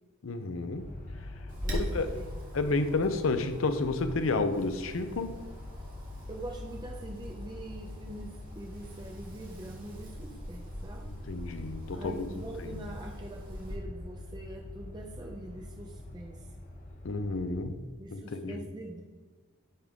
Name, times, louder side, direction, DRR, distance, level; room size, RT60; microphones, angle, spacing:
voice 1, 0.2-0.9 1.9-2.1 2.5-5.4 11.1-12.3 12.6-12.8 17.0-17.8 18.1-18.6, left 3 dB, 70° left, 9 dB, 0.6 m, -31 dB
sound 1, 0.7-17.6, left 1 dB, 40° left, 0.9 m, -45 dB
Wind, 1.5-13.8, equal, 45° right, 1.5 m, -43 dB
voice 2, 1.6-2.3 6.3-11.1 11.9-16.4 18.0-19.0, right 1 dB, 20° right, 1 dB, 0.5 m, -44 dB
9.7 x 3.7 x 3.6 m, 1.3 s
head